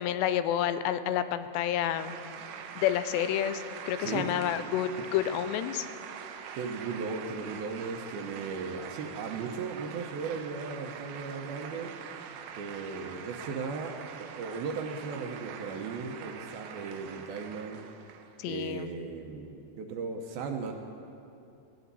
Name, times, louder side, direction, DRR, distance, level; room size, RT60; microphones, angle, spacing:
voice 1, 0.0-2.1 2.8-5.9 18.4-18.9, left 10 dB, 85° left, 11 dB, 2.8 m, -29 dB
sound 1, 2.0-18.5, right 8 dB, 90° right, 3.0 m, -44 dB
voice 2, 4.0-4.5 5.0-5.1 6.5-11.9 12.6-17.8 18.5-20.7, right 5 dB, 75° right, 3 dB, 2.5 m, -37 dB
19.5 x 16.0 x 4.1 m, 2.6 s
omnidirectional pair, 4.9 m